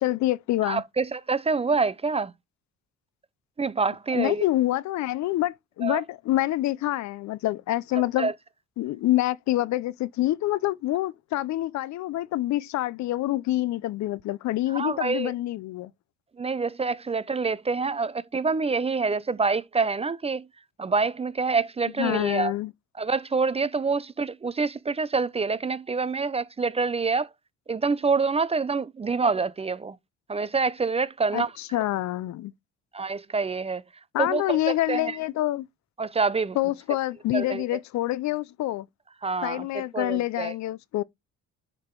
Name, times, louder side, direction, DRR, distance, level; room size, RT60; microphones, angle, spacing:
voice 1, 0.0-0.8 4.1-8.3 8.8-15.9 22.0-22.7 31.3-32.5 34.1-35.7 36.6-38.9 39.4-41.0, left 15 dB, 65° left, 0.4 m, -26 dB
voice 2, 0.6-2.3 3.6-4.4 5.8-6.0 8.2-8.3 14.7-15.3 16.4-20.5 20.8-22.5 23.0-27.3 27.7-30.0 30.3-31.5 32.9-33.8 34.2-35.1 36.0-36.6 37.3-37.8 39.2-39.7 39.9-40.5, right 4 dB, 20° right, 0.4 m, -26 dB
6.6 x 3.6 x 4.4 m
cardioid pair, 90°, 30 cm